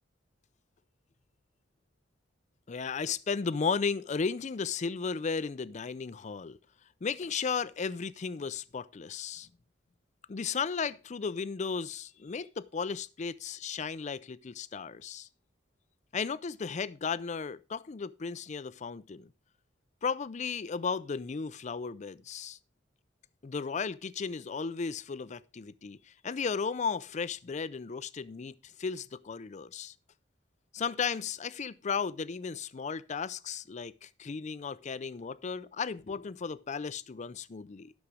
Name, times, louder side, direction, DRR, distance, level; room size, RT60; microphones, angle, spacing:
voice 1, 2.7-6.6 7.0-9.5 10.3-15.3 16.1-19.3 20.0-22.6 23.4-29.9 30.7-37.9, left 5 dB, 40° left, 0.4 m, -35 dB
11.5 x 6.4 x 4.8 m
head